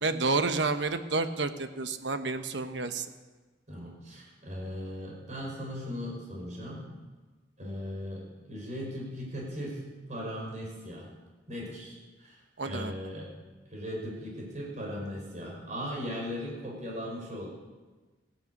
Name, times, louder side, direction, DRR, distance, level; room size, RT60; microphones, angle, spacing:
voice 1, 0.0-3.1 12.6-12.9, right 3 dB, 70° right, 9 dB, 1.1 m, -30 dB
voice 2, 3.7-6.9 7.6-9.8 10.1-11.1 11.5-13.3 13.7-17.5, equal, 40° right, -2 dB, 5.5 m, -38 dB
16.5 x 10.5 x 8.4 m, 1.3 s
head